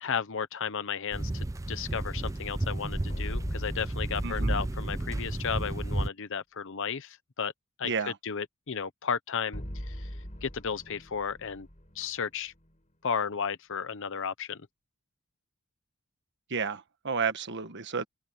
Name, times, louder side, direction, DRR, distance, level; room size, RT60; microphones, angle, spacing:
voice 1, 0.0-7.5 7.8-7.9 8.2-10.1 10.4-11.7 11.9-12.5 13.0-14.7, left 6 dB, 60° left, 0.8 m, -34 dB
sound 1, 1.1-6.1, right 1 dB, 15° right, 0.5 m, -32 dB
sound 2, 3.1-5.3 9.5-12.8, equal, 35° left, 5.2 m, -40 dB
voice 2, 7.8-8.2 16.5-18.1, right 5 dB, 55° right, 1.3 m, -31 dB
head